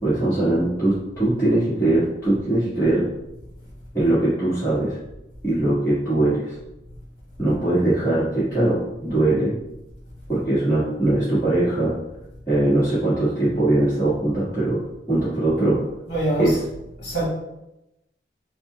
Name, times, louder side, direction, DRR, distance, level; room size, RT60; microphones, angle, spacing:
voice 1, 0.0-3.1 3.9-5.0 5.4-6.5 7.4-9.5 10.3-11.9 12.5-14.8 15.1-15.8 16.4-16.6, right 1 dB, 15° left, -15 dB, 1.5 m, -21 dB
voice 2, 16.1-16.6 17.0-17.2, right 1 dB, 50° left, -5 dB, 1.3 m, -24 dB
4.2 x 2.2 x 4.3 m, 0.92 s
head